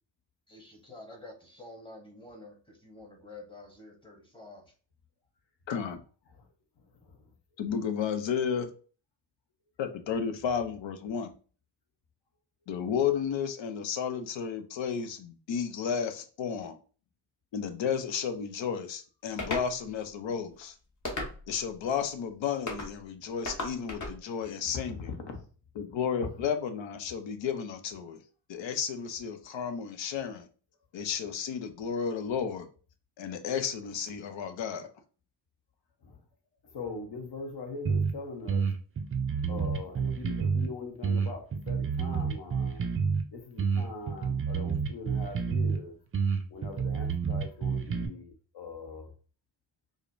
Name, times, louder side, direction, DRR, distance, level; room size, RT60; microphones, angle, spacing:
voice 1, 0.5-4.7, left 2 dB, 10° left, 0.9 m, -49 dB
voice 2, 5.7-6.0 7.6-8.7 9.8-11.3 12.7-16.8 17.5-20.7 21.5-25.1 25.8-28.2 28.5-30.5 30.9-32.7 33.2-34.9, left 7 dB, 90° left, 0.7 m, -32 dB
sound 1, 19.4-19.7 21.0-21.6 22.7-22.9 23.4-24.2, left 2 dB, 40° left, 1.0 m, -34 dB
voice 3, 24.7-25.4 36.0-36.2 36.7-38.7 39.5-42.9 43.3-46.0 46.5-49.1, left 3 dB, 65° left, 1.0 m, -41 dB
sound 2, 37.9-38.1 38.5-40.7 41.0-43.2 43.6-45.8 46.1-48.1, right 5 dB, 30° right, 0.4 m, -29 dB
4.9 x 2.1 x 2.5 m
wide cardioid pair, 115°, 44 cm